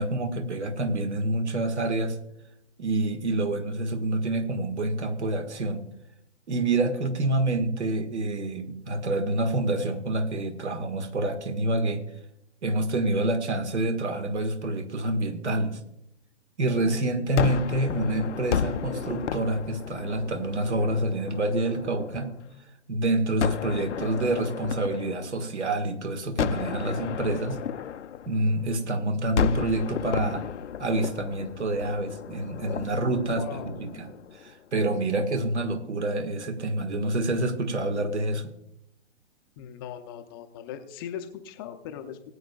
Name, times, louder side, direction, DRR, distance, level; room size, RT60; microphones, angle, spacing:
voice 1, 0.0-2.2 2.8-5.8 6.5-12.0 12.6-15.8 16.6-22.3 22.9-27.6 28.3-30.5 30.8-34.1 34.4-38.5, right 2 dB, 70° right, 7 dB, 1.7 m, -27 dB
Gunshot gunfire, 17.4-22.5 23.4-25.8 26.4-28.9 29.4-34.6, left 8 dB, 80° left, 0.5 m, -33 dB
voice 2, 33.2-33.8 39.6-42.3, left 9 dB, 20° left, 7 dB, 0.5 m, -39 dB
19.5 x 8.6 x 2.3 m, 0.81 s
figure-of-eight pair, 130°, 35 cm